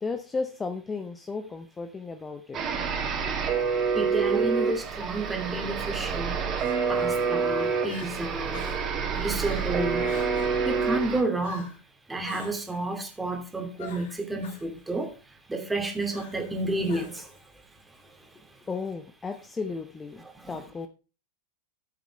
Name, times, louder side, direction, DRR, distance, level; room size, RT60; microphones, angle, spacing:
voice 1, 0.0-2.6 18.7-20.9, left 4 dB, 15° left, 1.0 m, -34 dB
sound 1, 2.5-11.2, right 5 dB, 30° right, 2.7 m, -27 dB
voice 2, 3.9-6.4 6.9-8.6 9.1-10.1 10.6-11.7 12.1-15.1 15.5-17.3 20.4-20.6, right 2 dB, 10° right, 2.6 m, -30 dB
Crying sobbing, 5.1-5.3 6.6-7.1 7.5-7.6 7.8-8.1 8.5-8.9 9.4-9.7 10.0-10.6 11.4-11.8 12.2-12.8 13.8-14.7 16.1-16.5 16.9-17.4, left 5 dB, 55° left, 2.7 m, -46 dB
14.5 x 8.2 x 3.4 m
figure-of-eight pair, 90°, 0 cm